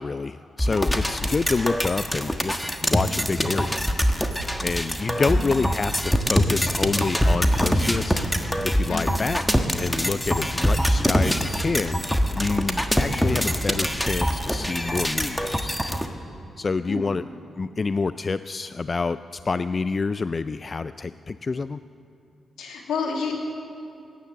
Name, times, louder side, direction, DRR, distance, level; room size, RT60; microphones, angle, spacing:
voice 1, 0.0-4.3 4.6-12.1 12.3-16.1 16.6-17.2 17.6-21.8, left 4 dB, 45° left, 13 dB, 0.3 m, -28 dB
sound 1, 0.6-16.1, equal, 5° left, 1.3 m, -24 dB
voice 2, 8.9-9.2 16.9-17.2 22.6-23.3, left 5 dB, 80° left, 1 dB, 2.0 m, -30 dB
16.0 x 10.0 x 7.1 m, 2.7 s
supercardioid pair, 50°, 0 cm